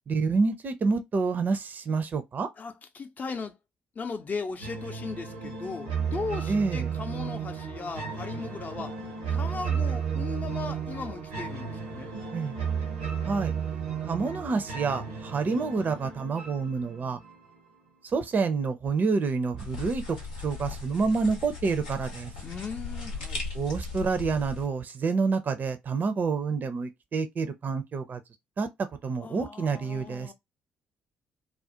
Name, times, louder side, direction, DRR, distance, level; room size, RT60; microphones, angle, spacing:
voice 1, 0.1-2.5 6.5-6.9 12.3-12.6 13.2-13.5 14.0-17.2 18.0-20.2 20.4-22.3 23.5-28.2 28.6-28.7 29.0-30.3, right 4 dB, 40° right, 0.5 m, -28 dB
voice 2, 2.6-3.6 4.0-9.0 9.3-12.1 15.4-15.6 22.4-23.4 29.2-30.3, left 4 dB, 40° left, 0.5 m, -37 dB
sound 1, 4.6-17.6, right 6 dB, 85° right, 0.6 m, -33 dB
sound 2, 19.6-24.7, left 4 dB, 85° left, 0.7 m, -38 dB
2.4 x 2.1 x 2.8 m
hypercardioid pair, 45°, 5 cm